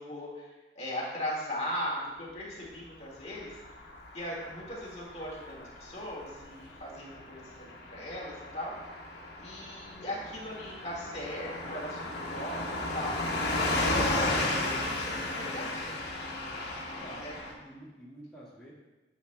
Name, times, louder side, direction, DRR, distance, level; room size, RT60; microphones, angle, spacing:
voice 1, 0.0-3.8 4.1-8.9 9.4-15.9 17.2-17.4, equal, 40° left, -4 dB, 1.8 m, -39 dB
Car passing by / Truck, 3.2-17.5, left 2 dB, 65° left, 1.2 m, -34 dB
voice 2, 16.9-18.7, equal, 5° left, -9 dB, 1.6 m, -50 dB
9.5 x 7.1 x 2.2 m, 1.1 s
head